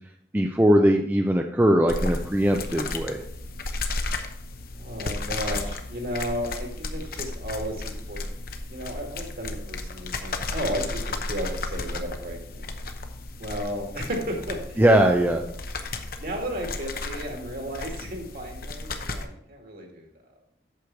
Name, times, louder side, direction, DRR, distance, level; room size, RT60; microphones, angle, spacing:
voice 1, 0.3-3.2 14.8-15.4, equal, 10° right, 2 dB, 0.5 m, -20 dB
sound 1, 1.9-19.3, left 2 dB, 55° left, 0.9 m, -34 dB
voice 2, 4.7-8.3 8.7-12.6 13.4-14.8 16.2-20.1, equal, 55° right, 1 dB, 2.2 m, -34 dB
8.3 x 6.8 x 4.6 m, 0.71 s
head